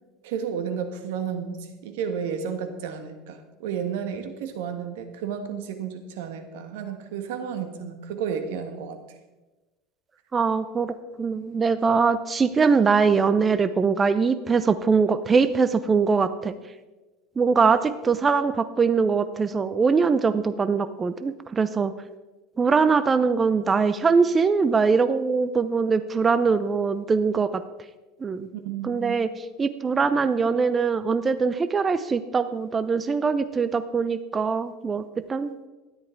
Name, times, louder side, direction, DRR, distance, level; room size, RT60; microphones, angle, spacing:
voice 1, 0.2-9.0 28.5-29.2, right 7 dB, 90° right, 7 dB, 1.6 m, -32 dB
voice 2, 10.3-16.5 17.4-21.9 22.6-27.6 28.2-28.5 28.8-29.3 29.6-35.5, right 5 dB, 20° right, 12 dB, 0.5 m, -22 dB
13.0 x 10.5 x 4.5 m, 1.2 s
cardioid pair, 155°, 0 cm